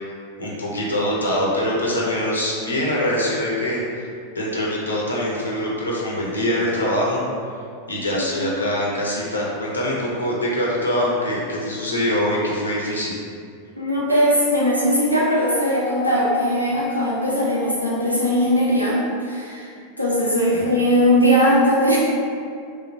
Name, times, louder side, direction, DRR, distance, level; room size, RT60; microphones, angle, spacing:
voice 1, 0.4-4.1 4.3-7.2 7.9-13.2 20.5-20.6, equal, 75° left, -4 dB, 0.6 m, -23 dB
voice 2, 13.8-19.7 20.0-22.0, equal, 90° right, -7 dB, 0.6 m, -19 dB
3.0 x 2.1 x 2.7 m, 2.3 s
figure-of-eight pair, 90°, 0 cm